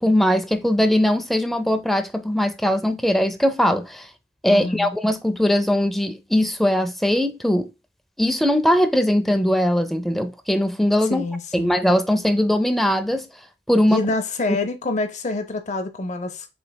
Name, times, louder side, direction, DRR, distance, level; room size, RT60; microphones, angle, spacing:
voice 1, 0.0-4.1 4.4-7.7 8.2-11.2 11.5-13.3 13.7-14.0 14.5-14.6, left 1 dB, ahead, 0.4 m, -20 dB
voice 2, 4.5-4.9 11.1-11.7 13.9-16.5, left 2 dB, 40° left, 0.6 m, -26 dB
6.8 x 3.2 x 2.2 m
head